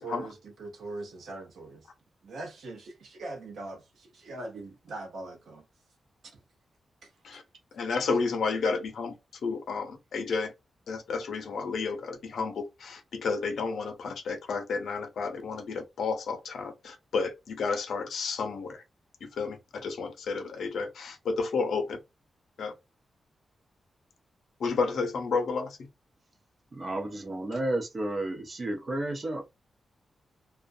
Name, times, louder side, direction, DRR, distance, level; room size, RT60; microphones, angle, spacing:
voice 1, 0.0-1.9 2.2-5.6 6.3-6.4 7.0-7.1, right 2 dB, 75° right, 0.8 m, -41 dB
voice 2, 7.7-9.1 9.4-10.5 10.9-18.8 19.2-22.0 22.6-22.7 24.6-25.8, left 4 dB, 75° left, 0.6 m, -31 dB
voice 3, 26.7-29.5, right 1 dB, 35° right, 0.6 m, -32 dB
2.4 x 2.1 x 2.5 m
wide cardioid pair, 125°, 0 cm